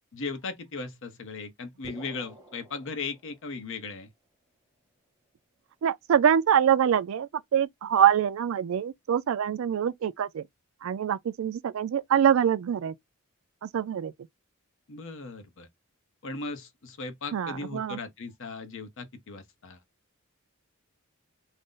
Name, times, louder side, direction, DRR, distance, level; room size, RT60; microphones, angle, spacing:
voice 1, 0.1-4.1 14.9-15.7 16.2-19.8, left 4 dB, 60° left, 0.7 m, -37 dB
sound 1, 1.8-3.8, right 1 dB, 15° right, 0.8 m, -49 dB
voice 2, 5.8-10.4 10.8-12.9 13.6-14.1 17.3-18.0, right 9 dB, 65° right, 0.3 m, -25 dB
2.5 x 2.0 x 3.7 m
head